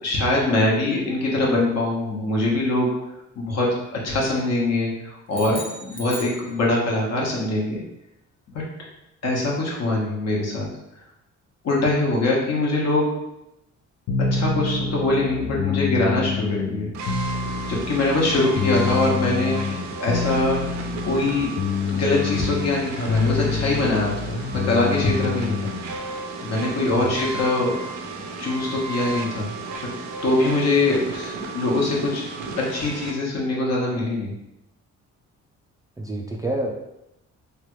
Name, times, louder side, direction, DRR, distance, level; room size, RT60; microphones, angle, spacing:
voice 1, 0.0-2.9 3.4-7.8 8.5-8.6 9.2-10.7 11.6-13.1 14.3-16.9 17.7-20.7 21.0-21.5 21.9-25.6 26.4-27.9 28.4-29.5 29.8-29.9 30.2-32.2 32.7-34.3, left 2 dB, 60° left, -3 dB, 1.1 m, -23 dB
sound 1, 5.3-7.1, left 1 dB, 20° left, 0.7 m, -38 dB
sound 2, 14.1-25.9, left 5 dB, 85° left, 0.5 m, -27 dB
sound 3, 16.9-33.1, right 3 dB, 70° right, 0.6 m, -34 dB
voice 2, 36.0-36.7, right 1 dB, 10° right, -2 dB, 0.3 m, -28 dB
3.2 x 2.3 x 3.0 m, 0.87 s
cardioid pair, 90°, 30 cm